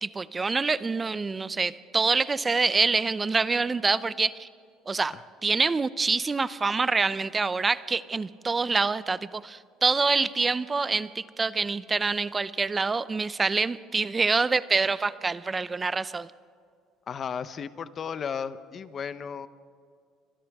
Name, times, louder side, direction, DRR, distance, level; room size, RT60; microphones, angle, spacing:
voice 1, 0.0-4.5 4.9-5.1 5.4-16.3, right 4 dB, 20° right, 16 dB, 0.6 m, -26 dB
voice 2, 17.1-19.5, left 7 dB, 35° left, 14 dB, 0.8 m, -34 dB
29.5 x 25.5 x 3.6 m, 2.2 s
cardioid pair, 125°, 0 cm